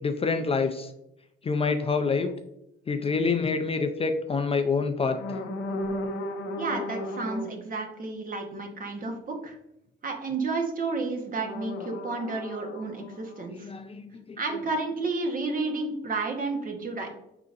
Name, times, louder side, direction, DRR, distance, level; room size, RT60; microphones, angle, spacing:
voice 1, 0.0-0.9 1.4-2.3 2.9-5.2 13.5-14.0 14.3-14.4, left 4 dB, 30° left, 7 dB, 0.4 m, -26 dB
sound 1, 2.2-2.3 3.3-3.5 5.1-7.6 11.4-13.5, left 1 dB, 80° left, 0.7 m, -35 dB
voice 2, 6.6-9.6 10.0-13.7 14.4-17.1, right 3 dB, 45° right, 3 dB, 1.0 m, -31 dB
4.9 x 3.9 x 2.4 m, 0.81 s
cardioid pair, 90°, 20 cm